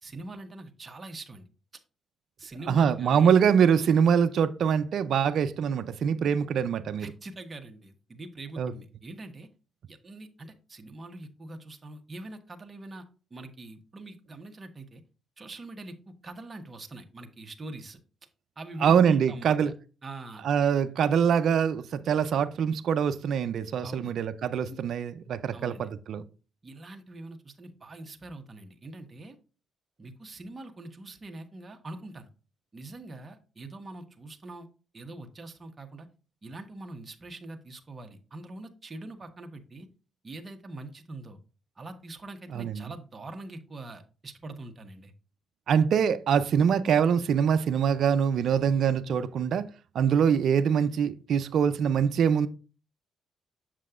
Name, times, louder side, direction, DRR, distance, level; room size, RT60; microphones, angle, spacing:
voice 1, 0.0-1.5 2.4-3.3 7.0-9.5 9.9-13.0 13.3-15.0 15.4-15.9 16.2-18.0 18.6-19.6 20.0-20.4 23.8-24.1 24.7-24.8 25.5-25.9 26.6-29.4 30.0-32.3 32.7-34.7 34.9-36.1 36.4-39.9 40.2-41.4 41.8-45.1, right 2 dB, 30° right, 1.1 m, -43 dB
voice 2, 2.7-7.1 8.6-8.7 18.8-19.7 20.4-26.2 42.5-42.8 45.7-49.7 49.9-52.5, right 7 dB, 65° right, 0.5 m, -24 dB
7.4 x 6.7 x 2.4 m
cardioid pair, 90°, 0 cm